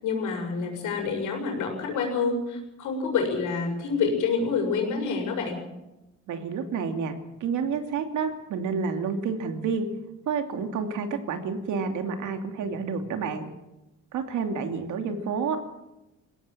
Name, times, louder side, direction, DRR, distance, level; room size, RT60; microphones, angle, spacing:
voice 1, 0.0-5.6, left 5 dB, 85° left, 3 dB, 7.0 m, -27 dB
voice 2, 6.3-7.1 7.4-9.9 10.3-13.4 14.1-15.6, right 5 dB, 80° right, 5 dB, 2.9 m, -29 dB
21.0 x 17.5 x 7.6 m, 0.96 s
cardioid pair, 90°, 30 cm